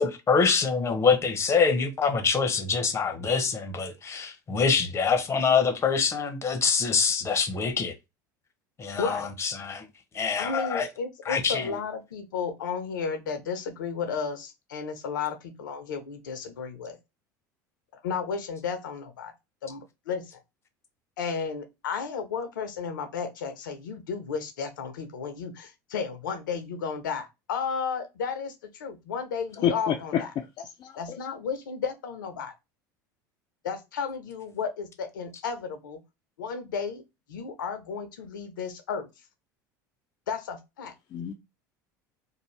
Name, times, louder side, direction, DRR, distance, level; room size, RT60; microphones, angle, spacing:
voice 1, 0.0-7.9 8.8-9.8 10.1-10.9 11.3-11.7, left 5 dB, 25° left, 0.8 m, -25 dB
voice 2, 9.0-9.3 10.4-17.0 18.0-19.3 19.6-20.3 21.2-30.3 31.0-32.5 33.6-36.0 36.4-37.0 37.3-39.1 40.3-40.9, left 6 dB, 85° left, 0.6 m, -33 dB
voice 3, 29.6-30.2 30.6-30.9 41.1-41.3, left 9 dB, 45° left, 0.4 m, -28 dB
2.6 x 2.1 x 3.2 m
hypercardioid pair, 80°, 10 cm